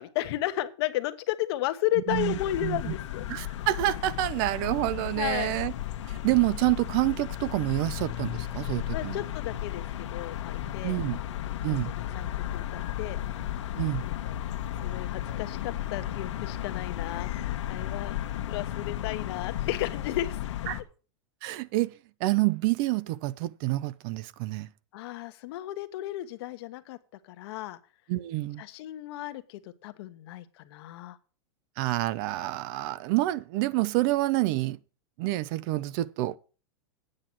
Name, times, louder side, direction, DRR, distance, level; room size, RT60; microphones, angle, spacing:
voice 1, 0.0-3.2 5.2-5.5 8.9-11.0 11.7-13.2 14.0-14.4 14.8-17.3 17.7-18.2 18.5-20.4 24.9-27.0 27.2-27.8 28.6-31.2, left 15 dB, 60° left, 1.1 m, -33 dB
sound 1, 2.1-20.8, left 12 dB, 80° left, 1.2 m, -34 dB
voice 2, 2.6-2.9 3.3-5.7 6.1-9.2 10.8-11.2 11.6-11.9 13.8-14.0 20.7-20.8 21.4-21.9 22.2-24.7 28.1-28.6 31.8-34.8 35.2-36.4, right 17 dB, 50° right, 0.5 m, -28 dB
8.9 x 7.5 x 6.0 m
supercardioid pair, 145°, 15 cm